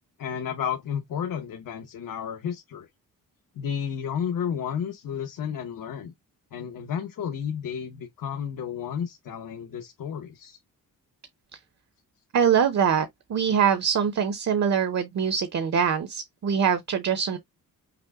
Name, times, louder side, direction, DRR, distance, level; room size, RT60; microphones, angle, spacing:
voice 1, 0.2-2.9 3.6-6.1 6.5-10.6, left 8 dB, 65° left, 0.9 m, -32 dB
voice 2, 12.3-17.4, right 7 dB, 50° right, 0.8 m, -23 dB
5.9 x 2.1 x 3.5 m
wide cardioid pair, 160°, 35 cm